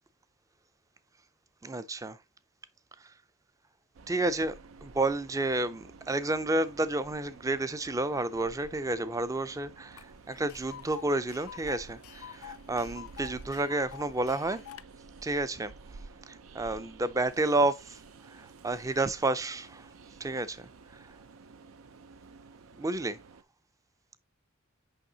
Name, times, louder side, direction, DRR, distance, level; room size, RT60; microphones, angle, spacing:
voice 1, 1.6-2.2 4.1-4.6 4.8-14.6 15.2-15.7 16.3-18.0 18.3-19.9 20.2-20.7 21.0-21.1 22.8-23.2, right 2 dB, 15° right, 0.4 m, -30 dB
Train, 3.9-23.4, right 4 dB, 80° right, 0.5 m, -52 dB
Tick, 10.0-10.1 10.3-14.8, left 10 dB, 85° left, 0.4 m, -47 dB
6.4 x 5.5 x 2.8 m
head